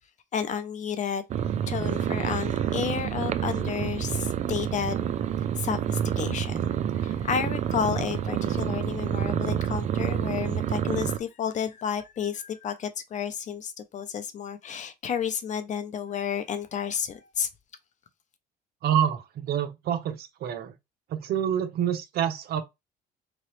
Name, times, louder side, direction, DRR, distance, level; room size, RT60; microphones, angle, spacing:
voice 1, 0.3-1.2 1.7-5.1 5.6-6.7 6.9-17.5, left 7 dB, 45° left, 0.7 m, -31 dB
sound 1, 1.3-11.2, right 9 dB, 45° right, 0.4 m, -28 dB
voice 2, 18.8-20.7 21.1-22.6, right 9 dB, 65° right, 0.8 m, -27 dB
3.8 x 3.1 x 3.2 m
cardioid pair, 110°, 17 cm